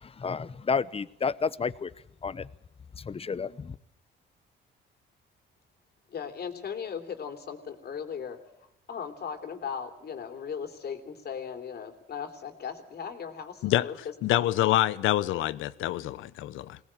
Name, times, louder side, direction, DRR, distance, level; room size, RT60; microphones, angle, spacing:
voice 1, 0.0-1.9 2.2-2.5 3.0-3.8, left 5 dB, 30° left, 0.9 m, -31 dB
voice 2, 6.1-8.4 8.9-14.5, left 7 dB, 55° left, 3.3 m, -38 dB
voice 3, 14.2-16.8, left 14 dB, 90° left, 0.9 m, -26 dB
22.0 x 18.5 x 8.9 m
cardioid pair, 90°, 20 cm